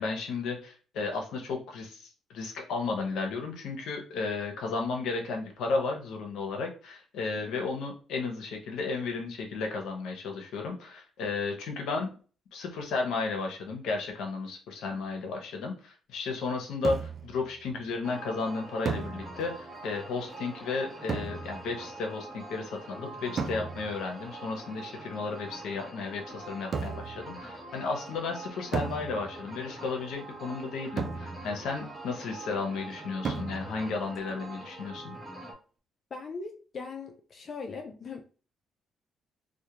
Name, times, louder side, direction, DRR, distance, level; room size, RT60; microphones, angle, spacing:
voice 1, 0.0-12.1 12.5-35.1, left 4 dB, 80° left, 0.6 m, -34 dB
sound 1, 16.8-17.4 18.9-19.7 21.1-21.9 23.4-24.1 26.7-27.3 28.7-29.6 31.0-31.8 33.2-33.9, right 5 dB, 50° right, 0.3 m, -35 dB
sound 2, 18.0-35.5, right 2 dB, 10° right, 0.8 m, -44 dB
voice 2, 36.1-38.2, left 4 dB, 45° left, 0.3 m, -40 dB
2.2 x 2.1 x 2.8 m
cardioid pair, 90°, 0 cm